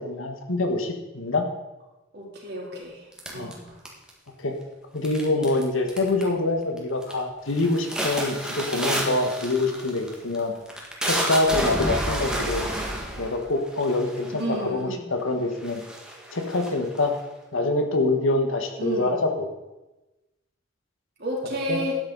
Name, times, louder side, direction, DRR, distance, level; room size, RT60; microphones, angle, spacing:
voice 1, 0.0-1.5 3.3-3.5 4.4-4.6 4.9-10.5 11.0-12.7 13.2-15.8 16.3-17.1 17.5-19.5 21.7-21.8, left 2 dB, 80° left, 5 dB, 1.5 m, -25 dB
voice 2, 2.1-3.0 3.3-3.7 14.3-15.0 18.8-19.2 21.2-21.9, right 1 dB, 55° right, -3 dB, 3.3 m, -31 dB
sound 1, 3.2-4.3 5.0-5.6 5.9-6.4 6.8-7.1 7.5-14.5 15.2-15.3 15.6-17.2, equal, 5° right, 1.7 m, -30 dB
12.5 x 9.4 x 4.0 m, 1.0 s
head